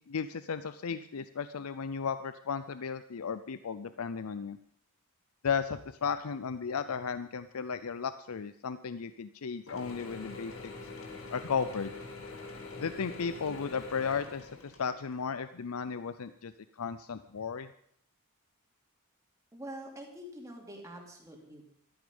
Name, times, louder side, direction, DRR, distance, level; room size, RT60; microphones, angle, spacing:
voice 1, 0.0-4.6 5.4-10.7 11.3-11.9 12.8-16.5 16.8-17.7, left 6 dB, 90° left, 13 dB, 0.6 m, -35 dB
Mechanisms / Drill, 9.7-15.2, left 3 dB, 65° left, 2.4 m, -45 dB
voice 2, 19.5-21.7, right 1 dB, 15° right, 0 dB, 2.7 m, -45 dB
14.0 x 13.0 x 5.3 m, 0.66 s
head